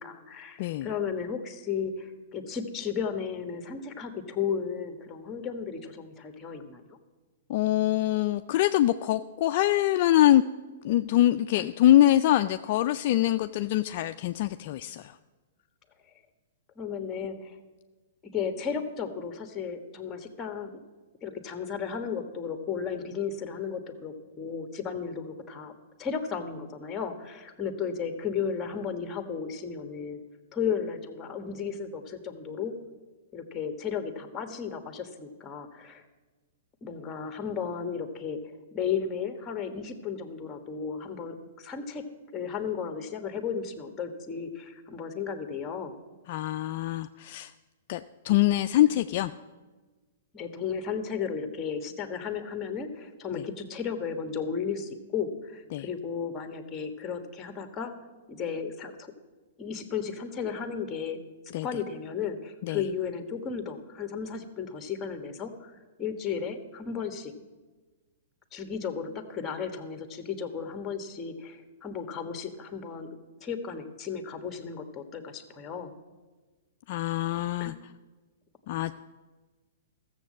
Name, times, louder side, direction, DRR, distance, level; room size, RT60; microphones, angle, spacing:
voice 1, 0.0-6.8 11.5-11.7 16.8-17.5 18.3-20.8 21.2-25.7 26.0-30.2 30.5-32.7 33.3-36.0 36.8-42.0 42.3-46.0 50.3-57.9 58.3-59.1 59.6-61.2 61.6-67.3 68.5-73.1 73.4-75.9 77.6-77.8, left 6 dB, 20° left, 8 dB, 1.3 m, -34 dB
voice 2, 0.6-0.9 7.5-10.4 10.8-15.2 46.3-47.5 47.9-49.3 55.7-55.9 61.5-61.7 62.6-62.8 76.9-77.7 78.7-78.9, left 13 dB, 50° left, 9 dB, 0.4 m, -24 dB
13.5 x 7.3 x 7.4 m, 1.3 s
hypercardioid pair, 140°, 0 cm